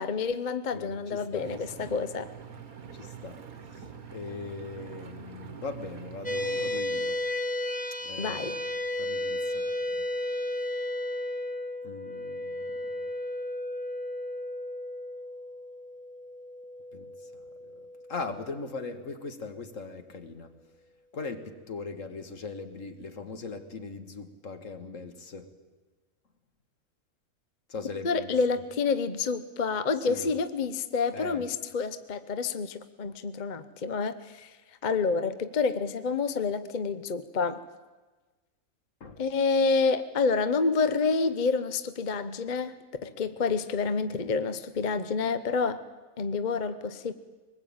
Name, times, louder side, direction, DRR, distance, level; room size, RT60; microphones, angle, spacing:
voice 1, 0.0-2.3 8.2-8.6 28.0-34.5 34.8-37.6 39.2-42.7 43.0-45.8 46.2-47.1, left 4 dB, 40° left, 11 dB, 0.8 m, -28 dB
voice 2, 0.7-1.9 2.9-3.4 4.1-7.2 8.0-8.4 9.0-10.1 11.8-12.8 16.9-17.1 17.6-20.5 21.1-25.5 27.7-28.3 30.1-30.3 31.1-31.4 39.0-39.2, left 4 dB, 55° left, 7 dB, 2.0 m, -40 dB
Engine, 1.3-6.8, right 7 dB, 70° right, 1.8 m, -45 dB
sound 1, 6.2-18.9, left 1 dB, 5° left, 1.3 m, -34 dB
23.5 x 20.5 x 8.8 m, 1.3 s
omnidirectional pair, 1.6 m